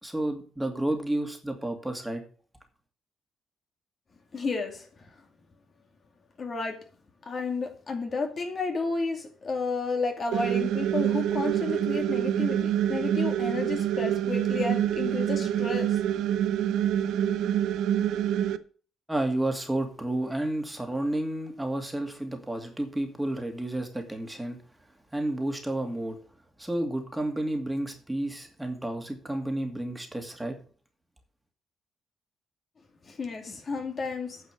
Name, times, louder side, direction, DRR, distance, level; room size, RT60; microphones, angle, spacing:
voice 1, 0.0-2.2 19.1-24.6 25.1-26.2 26.6-30.6, right 1 dB, 10° right, 4 dB, 2.4 m, -31 dB
voice 2, 4.3-5.1 6.4-6.8 7.3-16.0 33.0-34.5, left 3 dB, 45° left, 4 dB, 2.3 m, -32 dB
sound 1, 10.3-18.6, right 10 dB, 80° right, 0.7 m, -26 dB
9.4 x 6.0 x 8.0 m, 0.41 s
cardioid pair, 90°, 0 cm